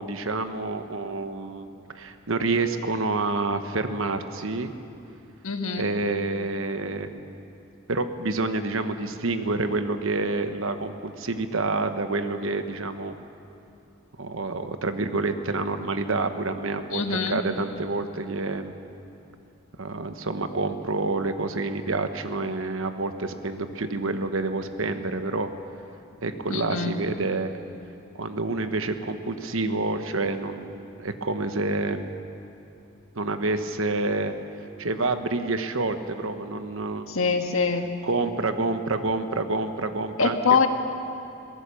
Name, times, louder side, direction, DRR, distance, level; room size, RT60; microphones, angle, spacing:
voice 1, 0.0-1.7 1.9-4.7 5.8-7.4 7.9-13.1 14.2-18.8 19.8-25.5 26.2-27.5 28.1-32.1 33.1-34.3 34.8-37.4 38.0-40.4, right 3 dB, 70° right, 8 dB, 1.1 m, -28 dB
voice 2, 5.4-5.9 16.9-17.4 26.5-27.0 37.1-37.9 40.2-40.7, left 5 dB, 75° left, 5 dB, 1.6 m, -24 dB
22.5 x 17.0 x 7.0 m, 2.8 s
head